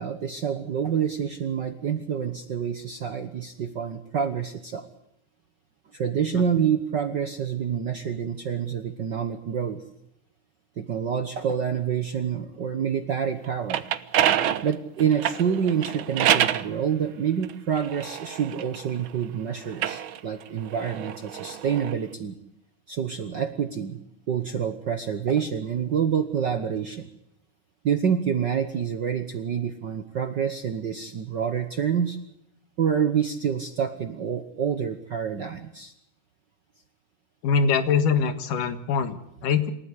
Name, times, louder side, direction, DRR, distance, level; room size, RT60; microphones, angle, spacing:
voice 1, 0.0-4.9 5.9-9.8 10.8-13.8 14.6-22.3 22.9-24.0 24.3-27.1 27.8-32.2 32.8-35.9, right 7 dB, 60° right, 9 dB, 1.1 m, -27 dB
sound 1, 13.4-16.7 17.4-19.1 19.6-22.0, right 10 dB, 90° right, 1.1 m, -27 dB
voice 2, 37.4-39.7, left 6 dB, 80° left, 11 dB, 3.3 m, -23 dB
28.0 x 14.0 x 8.2 m, 0.79 s
omnidirectional pair, 3.6 m